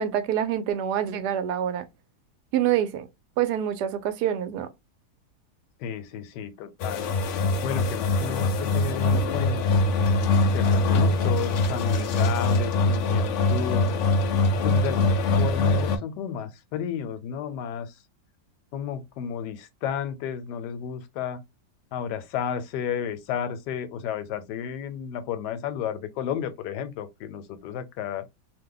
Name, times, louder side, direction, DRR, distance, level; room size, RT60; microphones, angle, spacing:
voice 1, 0.0-1.8 2.5-3.1 3.4-4.7, right 10 dB, 80° right, 1.1 m, -26 dB
voice 2, 5.8-7.1 7.6-9.9 10.5-14.0 14.5-18.0 18.7-21.4 21.9-28.2, left 8 dB, 85° left, 1.2 m, -32 dB
sound 1, 6.8-16.0, left 2 dB, 65° left, 0.7 m, -23 dB
2.8 x 2.1 x 3.7 m
omnidirectional pair, 1.8 m